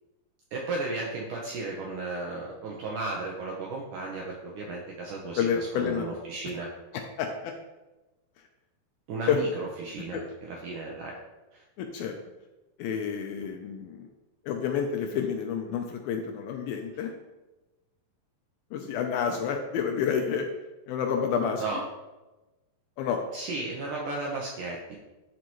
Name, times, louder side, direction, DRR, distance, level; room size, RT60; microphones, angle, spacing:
voice 1, 0.5-6.7 9.1-11.2 11.5-11.6 21.6-21.8 23.3-25.0, right 3 dB, 75° right, -2 dB, 1.9 m, -34 dB
voice 2, 5.4-6.2 7.2-7.5 9.3-9.4 10.1-10.2 11.8-12.1 12.8-14.1 14.5-17.1 18.7-20.5 20.9-21.8 23.0-23.2, left 7 dB, 80° left, 4 dB, 2.3 m, -29 dB
11.5 x 4.6 x 3.0 m, 1.1 s
omnidirectional pair, 4.7 m